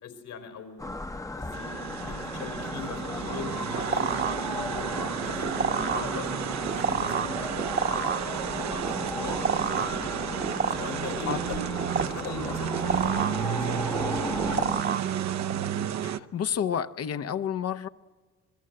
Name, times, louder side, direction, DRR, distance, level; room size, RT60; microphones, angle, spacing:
voice 1, 0.0-0.9 1.3-6.3 6.5-10.1 10.6-11.7 12.0-13.1 13.5-15.0, left 5 dB, 80° left, 4.2 m, -41 dB
sound 1, 0.8-14.8, left 2 dB, 10° left, 0.8 m, -35 dB
sound 2, 1.5-16.2, right 9 dB, 65° right, 0.9 m, -32 dB
sound 3, 3.2-15.6, right 6 dB, 40° right, 1.2 m, -31 dB
voice 2, 16.0-17.9, left 8 dB, 55° left, 0.8 m, -30 dB
27.5 x 20.5 x 7.8 m
cardioid pair, 90°, 30 cm